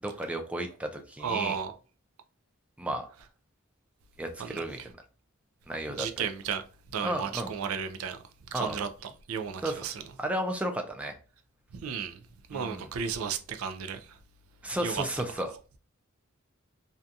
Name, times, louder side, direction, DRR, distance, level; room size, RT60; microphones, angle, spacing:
voice 1, 0.0-1.6 2.8-3.1 4.2-4.8 5.7-6.2 7.0-7.5 8.5-8.8 9.6-9.8 10.2-11.1 12.5-12.9 14.6-15.5, right 1 dB, 5° right, 0.3 m, -33 dB
voice 2, 1.2-1.7 4.4-4.9 5.9-6.6 6.9-8.2 8.5-10.0 11.7-12.2 12.5-14.2 14.8-15.0 15.4-15.5, right 7 dB, 85° right, 0.4 m, -34 dB
2.7 x 2.3 x 2.5 m
head